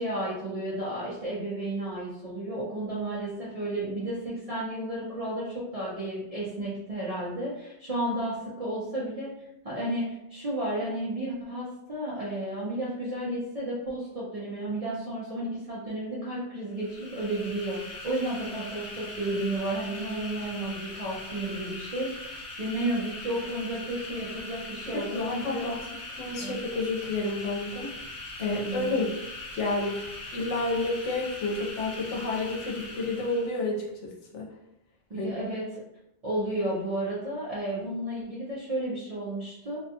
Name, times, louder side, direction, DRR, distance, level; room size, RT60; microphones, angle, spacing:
voice 1, 0.0-9.3 9.6-25.7 26.4-26.6 27.8-27.9 28.4-28.9 35.1-35.6 36.2-39.8, right 1 dB, 40° right, -8 dB, 0.6 m, -32 dB
sound 1, 16.7-33.6, left 2 dB, 45° left, 1.0 m, -41 dB
voice 2, 24.9-25.8 26.2-27.9 28.4-29.2 29.5-34.5 35.2-35.3, left 2 dB, 80° left, -2 dB, 1.0 m, -30 dB
2.6 x 2.2 x 2.7 m, 0.83 s
omnidirectional pair, 1.2 m